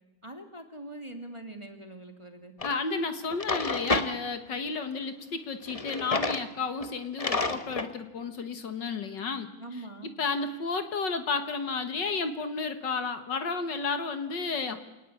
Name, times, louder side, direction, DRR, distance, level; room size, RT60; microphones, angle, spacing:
voice 1, 0.2-2.6 9.6-10.1, right 2 dB, 15° right, 5 dB, 2.2 m, -43 dB
voice 2, 2.6-9.5 10.0-14.8, left 4 dB, 60° left, 9 dB, 2.1 m, -32 dB
Drawer open or close, 2.6-2.7 3.2-4.1 5.7-6.5 6.8-6.9 7.2-7.9, left 3 dB, 25° left, 0.9 m, -30 dB
27.5 x 19.0 x 8.5 m, 1.1 s
omnidirectional pair, 2.2 m